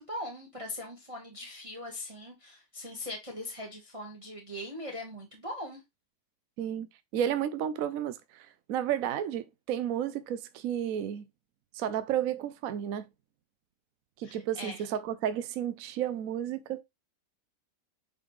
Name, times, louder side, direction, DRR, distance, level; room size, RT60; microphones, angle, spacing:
voice 1, 0.0-5.8 14.2-14.8, left 1 dB, 20° right, 1.6 m, -40 dB
voice 2, 7.1-11.3 11.7-13.0 14.2-16.8, right 10 dB, 70° right, 0.9 m, -32 dB
8.5 x 4.3 x 3.2 m
omnidirectional pair, 1.9 m